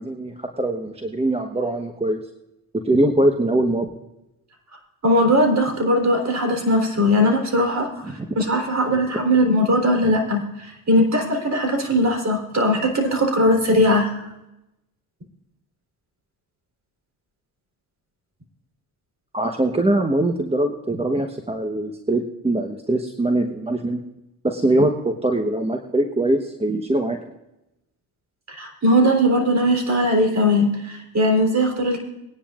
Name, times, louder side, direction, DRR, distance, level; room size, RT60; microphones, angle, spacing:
voice 1, 0.0-2.2 2.8-3.9 8.0-8.3 9.1-9.2 19.3-24.0 24.4-27.2, right 1 dB, 15° right, 4 dB, 1.1 m, -22 dB
voice 2, 5.0-7.9 8.4-14.2 28.5-32.0, equal, 35° right, 3 dB, 3.6 m, -19 dB
22.0 x 10.0 x 2.5 m, 0.91 s
supercardioid pair, 60°, 45 cm